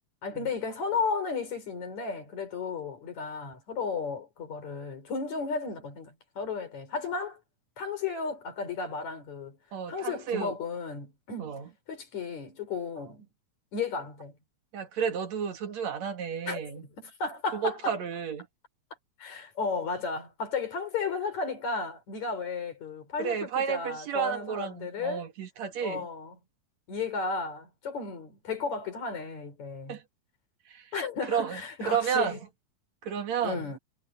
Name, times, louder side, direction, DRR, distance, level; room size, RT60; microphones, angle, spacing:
voice 1, 0.2-7.4 7.8-9.6 9.9-11.6 11.9-13.3 13.7-14.3 16.5-18.0 19.2-25.3 25.8-26.4 26.9-30.0 30.9-32.4 33.4-33.8, left 4 dB, 70° left, 5.7 m, -34 dB
voice 2, 9.7-10.5 11.4-11.7 14.7-16.8 17.5-18.5 23.2-26.1 29.9-30.0 30.7-30.8 31.2-32.4 33.0-33.7, right 7 dB, 70° right, 3.0 m, -31 dB
omnidirectional pair, 3.3 m